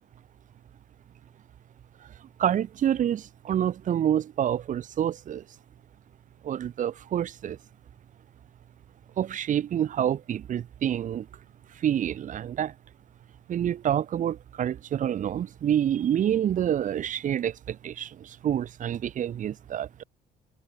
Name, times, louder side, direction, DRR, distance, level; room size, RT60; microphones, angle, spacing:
voice 1, 2.4-5.4 6.4-7.6 9.2-11.2 11.8-12.7 13.5-20.0, right 10 dB, 50° right, 1.2 m, -27 dB
cardioid pair, 110°, 17 cm